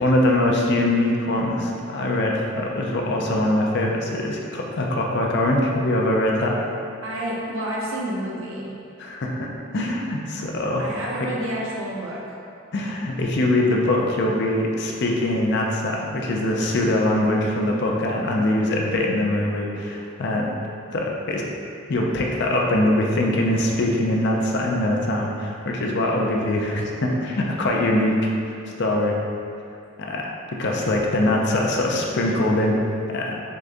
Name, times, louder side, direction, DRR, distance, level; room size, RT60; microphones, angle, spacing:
voice 1, 0.0-6.5 9.0-10.8 11.2-11.3 12.7-20.5 20.9-21.5 21.9-28.2 28.4-29.1 30.0-32.8 33.1-33.4, left 1 dB, 60° left, -1 dB, 0.5 m, -23 dB
voice 2, 7.0-8.7 10.8-12.2, right 1 dB, 75° right, -5 dB, 0.9 m, -29 dB
3.9 x 3.7 x 3.4 m, 2.5 s
head